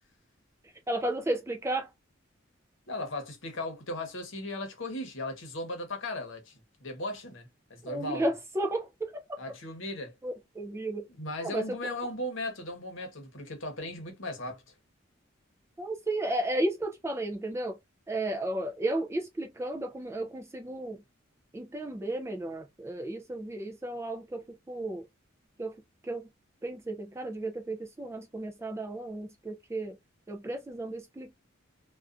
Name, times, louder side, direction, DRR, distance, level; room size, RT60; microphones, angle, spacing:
voice 1, 0.9-1.9 7.8-9.4 10.2-11.1 11.4-11.8 15.8-17.8 18.1-21.0 21.5-25.1 25.6-25.8 26.0-26.3 26.6-30.0 30.3-31.3, right 1 dB, 15° right, 0.3 m, -33 dB
voice 2, 2.9-8.2 9.4-10.1 11.2-14.6, left 1 dB, 65° left, 0.9 m, -37 dB
2.4 x 2.3 x 2.4 m
head